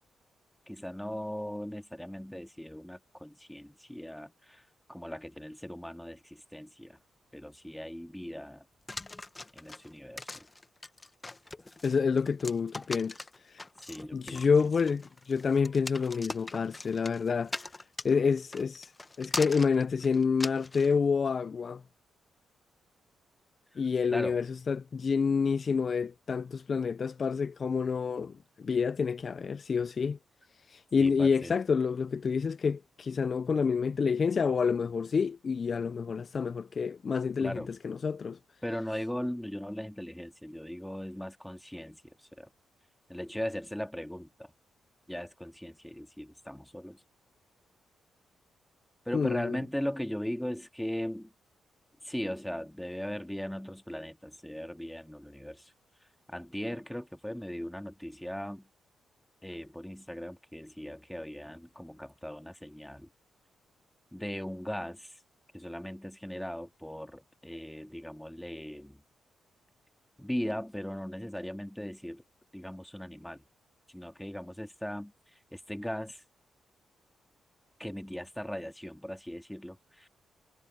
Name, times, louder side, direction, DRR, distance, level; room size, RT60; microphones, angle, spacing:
voice 1, 0.7-7.0 7.3-8.7 9.5-10.5 13.8-14.5 23.7-23.8 24.1-24.4 31.0-31.5 37.4-37.7 38.6-42.5 43.1-44.5 45.1-47.0 49.1-51.3 52.0-55.7 56.3-58.7 59.4-63.1 64.1-65.2 65.5-69.0 70.2-72.2 72.5-73.4 73.9-76.2 77.8-80.1, equal, 5° left, 2.1 m, -39 dB
sound 1, 8.9-20.9, left 2 dB, 25° left, 1.6 m, -41 dB
voice 2, 11.8-13.1 13.5-13.6 14.1-17.6 18.0-18.9 19.2-21.8 23.8-30.2 30.7-38.4 49.1-49.6, left 5 dB, 50° left, 0.6 m, -28 dB
supercardioid pair, 55°, 0 cm